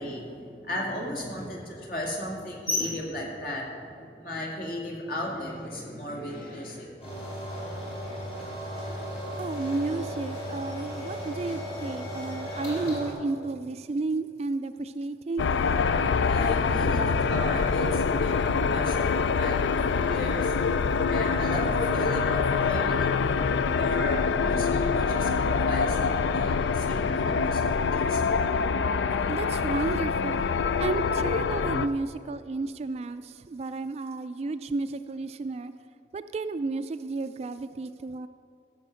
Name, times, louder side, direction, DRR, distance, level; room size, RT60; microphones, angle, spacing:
voice 1, 0.0-6.9 16.3-20.5 21.1-28.4, left 1 dB, 50° left, -1 dB, 2.2 m, -35 dB
sound 1, 7.0-13.1, equal, 35° left, 3.5 m, -35 dB
voice 2, 9.4-15.5 29.3-30.5 30.8-35.7 36.1-38.3, right 3 dB, 35° right, 11 dB, 0.3 m, -32 dB
sound 2, 15.4-31.9, left 5 dB, 80° left, 0.4 m, -25 dB
14.5 x 6.5 x 6.2 m, 2.5 s
head